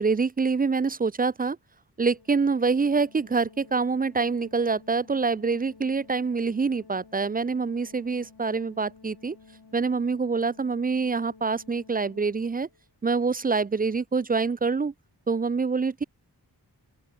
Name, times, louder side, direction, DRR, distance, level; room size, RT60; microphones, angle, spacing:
voice 1, 0.0-1.6 2.0-9.4 9.7-12.7 13.0-14.9 15.3-16.0, right 4 dB, 25° right, 0.3 m, -26 dB
Organ, 2.0-12.9, left 4 dB, 65° left, 4.1 m, -53 dB
open air
wide cardioid pair, 50°, 41 cm